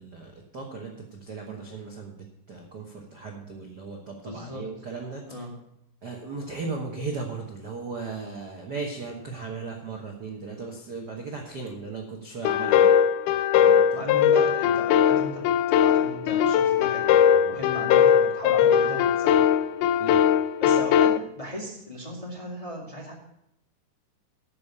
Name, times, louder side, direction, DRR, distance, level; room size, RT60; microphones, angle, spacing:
voice 1, 0.0-2.2 2.5-5.2 6.0-13.0 13.6-14.0 20.0-20.3, right 4 dB, 60° right, 1 dB, 1.0 m, -36 dB
voice 2, 4.2-4.7 5.3-5.5 13.9-19.4 20.6-23.2, left 1 dB, 15° left, -2 dB, 1.4 m, -37 dB
sound 1, 12.4-21.2, left 9 dB, 80° left, 2.0 m, -20 dB
12.5 x 5.1 x 8.5 m, 0.80 s
omnidirectional pair, 3.9 m